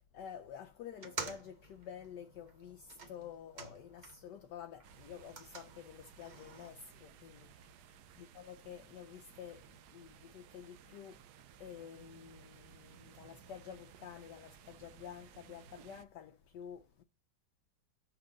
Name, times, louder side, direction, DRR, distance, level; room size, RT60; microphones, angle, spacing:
voice 1, 0.0-7.8 8.2-11.2 11.6-17.0, left 8 dB, 70° left, 1.2 m, -50 dB
sound 1, 0.9-4.4 4.7-6.7, right 4 dB, 40° right, 0.7 m, -49 dB
sound 2, 4.8-16.0, right 9 dB, 70° right, 1.0 m, -59 dB
6.1 x 4.5 x 5.1 m
omnidirectional pair, 2.2 m